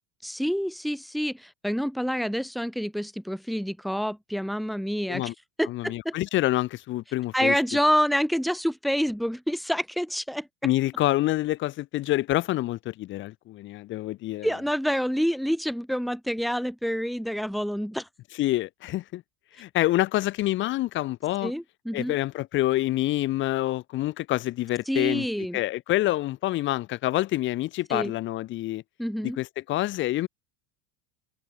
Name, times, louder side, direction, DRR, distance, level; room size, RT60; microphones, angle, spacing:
voice 1, 0.2-5.3 5.6-6.1 7.3-10.5 14.4-18.1 21.4-22.2 24.9-25.6 27.9-28.1 29.0-29.4, equal, ahead, 5.3 m, -27 dB
voice 2, 5.7-7.6 10.6-14.5 18.4-19.2 19.6-21.5 21.9-25.3 25.5-28.8 29.4-30.3, left 16 dB, 40° left, 6.1 m, -27 dB
supercardioid pair, 160°, 30 cm